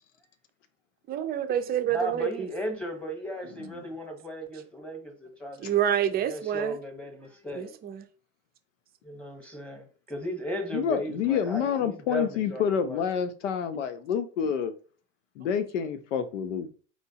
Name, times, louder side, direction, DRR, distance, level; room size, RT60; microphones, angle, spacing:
voice 1, 1.1-2.5 5.6-6.8 7.5-8.0, right 10 dB, 25° right, 0.5 m, -27 dB
voice 2, 1.9-5.7 6.3-7.7 9.0-13.0, equal, 5° left, 1.1 m, -36 dB
voice 3, 10.7-14.7 15.4-16.7, left 7 dB, 80° left, 0.8 m, -28 dB
4.4 x 3.2 x 2.8 m
hypercardioid pair, 115°, 36 cm